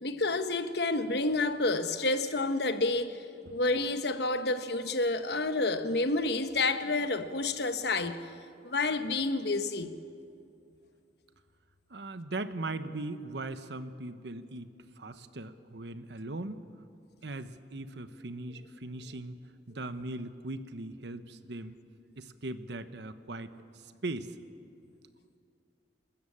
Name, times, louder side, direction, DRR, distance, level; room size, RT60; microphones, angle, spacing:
voice 1, 0.0-8.2 8.6-10.0, left 2 dB, 60° left, 1.1 m, -29 dB
voice 2, 11.9-16.6 17.2-19.4 19.7-21.8 22.2-24.3, right 2 dB, 70° right, 1.0 m, -39 dB
29.0 x 13.0 x 8.6 m
head